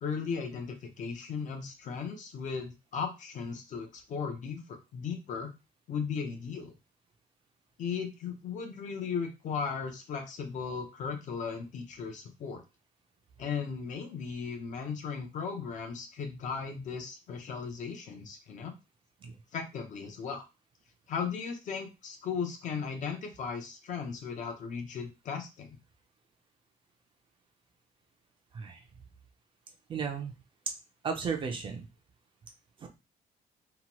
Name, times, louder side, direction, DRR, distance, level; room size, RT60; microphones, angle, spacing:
voice 1, 0.0-5.5 5.9-6.7 7.8-12.6 13.4-18.7 19.5-20.4 21.1-25.8, left 6 dB, 50° left, 4 dB, 0.6 m, -36 dB
voice 2, 29.9-30.3 31.0-31.9 32.8-32.9, right 6 dB, 30° right, 4 dB, 0.4 m, -34 dB
2.8 x 2.2 x 2.9 m, 0.27 s
cardioid pair, 175°, 16 cm